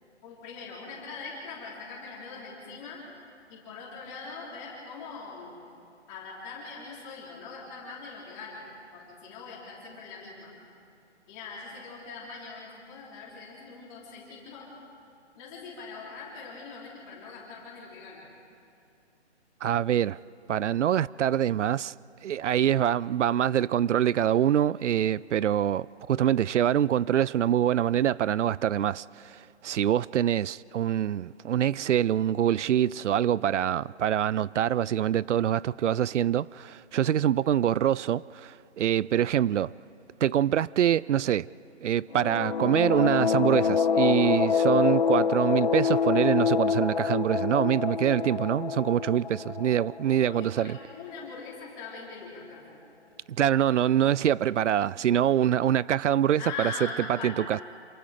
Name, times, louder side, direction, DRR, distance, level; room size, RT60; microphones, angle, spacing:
voice 1, 0.2-3.0 3.5-5.6 6.1-8.6 8.9-10.5 11.3-14.7 15.4-18.3 50.3-52.8 56.4-57.6, left 4 dB, 15° left, 3.5 m, -42 dB
voice 2, 19.6-20.2 20.5-21.9 22.2-39.7 40.2-41.5 41.8-50.8 53.4-57.6, right 10 dB, 85° right, 0.5 m, -25 dB
sound 1, 42.1-50.7, left 6 dB, 45° left, 0.4 m, -26 dB
27.5 x 26.0 x 5.0 m
hypercardioid pair, 175°, 35 cm